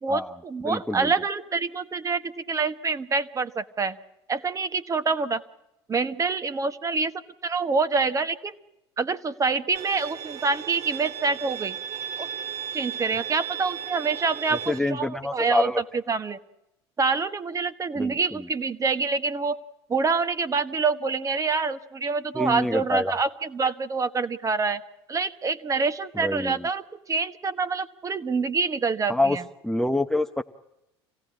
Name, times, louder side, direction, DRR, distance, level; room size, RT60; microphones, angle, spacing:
voice 1, 0.0-4.0 4.3-5.4 5.9-7.1 7.4-8.6 9.0-11.7 12.2-12.3 12.7-15.7 16.1-16.4 17.0-19.6 19.9-24.8 25.1-29.4, right 4 dB, 25° right, 11 dB, 1.3 m, -26 dB
voice 2, 0.6-1.1 14.7-15.8 18.0-18.5 22.3-23.2 26.1-26.7 29.1-29.4 29.6-30.4, left 2 dB, ahead, 8 dB, 0.8 m, -26 dB
Bowed string instrument, 9.8-14.8, right 9 dB, 50° right, 2.2 m, -35 dB
25.5 x 17.0 x 8.5 m, 0.90 s
hypercardioid pair, 75°, 14 cm